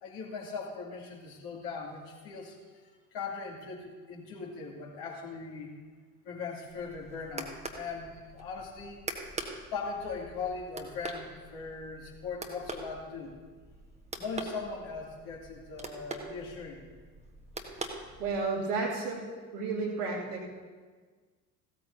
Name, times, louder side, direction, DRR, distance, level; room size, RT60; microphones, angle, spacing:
voice 1, 0.0-2.6 3.1-5.7 6.2-9.0 9.7-13.4 14.2-16.8, left 4 dB, 55° left, -3 dB, 2.5 m, -39 dB
sound 1, 6.7-18.6, right 2 dB, 15° right, 1.4 m, -44 dB
voice 2, 18.2-19.3 19.5-20.5, right 4 dB, 80° right, -5 dB, 2.5 m, -32 dB
16.0 x 13.0 x 2.7 m, 1.5 s
figure-of-eight pair, 60°, 46 cm